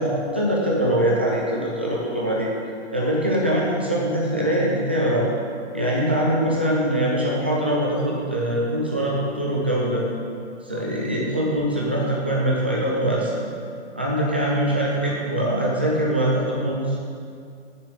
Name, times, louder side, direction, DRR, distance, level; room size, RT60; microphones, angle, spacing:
voice 1, 0.0-2.5 2.9-5.3 5.7-10.0 10.6-13.4 14.0-17.0, right 1 dB, 10° right, -4 dB, 0.3 m, -23 dB
7.2 x 6.9 x 6.3 m, 2.3 s
hypercardioid pair, 145°, 36 cm